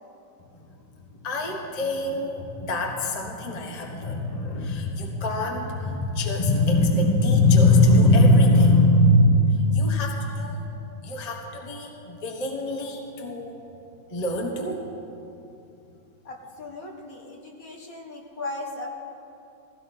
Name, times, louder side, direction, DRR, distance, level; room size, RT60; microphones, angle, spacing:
voice 1, 1.1-13.5 14.1-14.9, left 1 dB, 25° left, 1 dB, 1.3 m, -22 dB
voice 2, 16.2-18.9, left 2 dB, 50° left, 0 dB, 1.7 m, -37 dB
17.5 x 16.0 x 4.4 m, 2.8 s
omnidirectional pair, 2.1 m